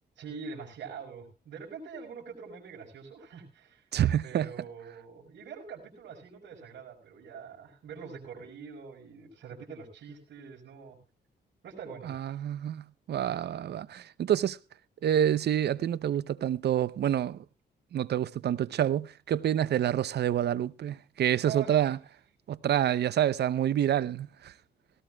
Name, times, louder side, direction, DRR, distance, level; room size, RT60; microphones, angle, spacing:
voice 1, 0.2-3.8 4.2-11.0 11.6-12.4 21.4-21.9, right 6 dB, 90° right, 4.9 m, -44 dB
voice 2, 3.9-4.5 12.1-14.6 15.0-17.4 17.9-22.0 22.5-24.5, right 10 dB, 65° right, 0.7 m, -28 dB
18.0 x 18.0 x 2.4 m
cardioid pair, 95°, 18 cm